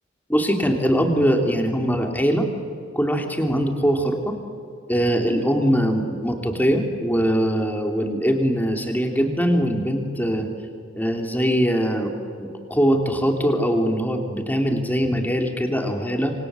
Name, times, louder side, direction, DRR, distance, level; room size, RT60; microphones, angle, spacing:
voice 1, 0.3-2.5 2.9-4.4 4.9-10.5 11.0-12.1 12.4-16.3, equal, 10° left, 3 dB, 3.1 m, -22 dB
27.5 x 26.5 x 7.7 m, 2.4 s
head